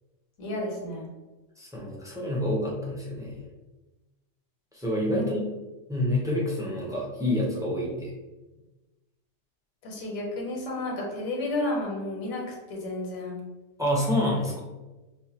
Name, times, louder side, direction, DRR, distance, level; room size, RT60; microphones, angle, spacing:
voice 1, 0.4-1.1 5.1-5.3 9.8-13.4, left 2 dB, 70° left, -1 dB, 1.3 m, -32 dB
voice 2, 1.6-3.4 4.7-5.4 5.9-8.1 13.8-14.6, left 1 dB, 5° right, -4 dB, 0.4 m, -27 dB
5.3 x 2.2 x 2.9 m, 1.1 s
omnidirectional pair, 1.5 m